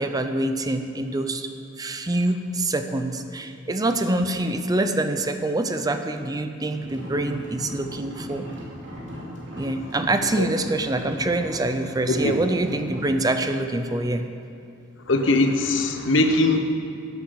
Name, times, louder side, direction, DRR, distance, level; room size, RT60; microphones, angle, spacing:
voice 1, 0.0-1.5 1.8-8.5 9.5-14.3, right 2 dB, 20° right, 8 dB, 0.5 m, -25 dB
sound 1, 6.7-13.1, equal, 70° right, 2.6 m, -38 dB
voice 2, 9.5-9.8 10.4-10.5 12.1-12.3 15.1-16.6, left 2 dB, 70° left, 6 dB, 1.1 m, -21 dB
11.5 x 8.1 x 7.2 m, 2.6 s
head